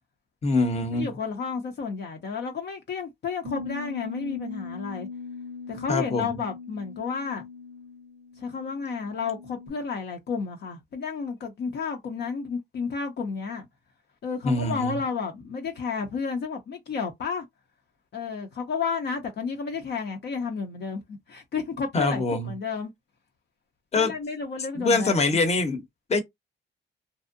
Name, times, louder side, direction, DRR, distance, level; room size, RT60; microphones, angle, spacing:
voice 1, 0.4-1.1 5.9-6.3 14.4-14.9 21.9-22.5 23.9-24.1 24.7-25.8 26.1-26.2, left 3 dB, 35° left, 0.8 m, -24 dB
voice 2, 0.9-5.1 5.7-7.5 8.4-13.7 14.2-17.5 18.1-22.9 23.9-25.4, left 5 dB, 60° left, 0.7 m, -32 dB
Bass guitar, 3.4-9.7, left 4 dB, 60° right, 0.5 m, -40 dB
2.6 x 2.0 x 2.5 m
cardioid pair, 90°, 20 cm